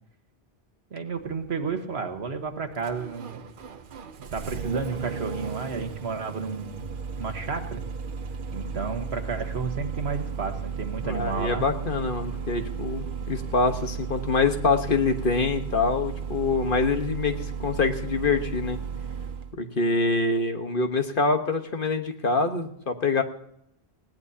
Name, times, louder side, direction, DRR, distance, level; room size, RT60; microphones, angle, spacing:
voice 1, 0.9-3.4 4.3-6.8 7.2-7.8 8.5-11.7, right 5 dB, 85° right, 6 dB, 1.6 m, -32 dB
Engine starting, 1.1-19.5, right 6 dB, 55° right, 0.9 m, -35 dB
voice 2, 11.0-18.8 19.6-23.2, left 3 dB, 55° left, 6 dB, 1.4 m, -25 dB
19.5 x 16.5 x 2.8 m, 0.75 s
omnidirectional pair, 1.1 m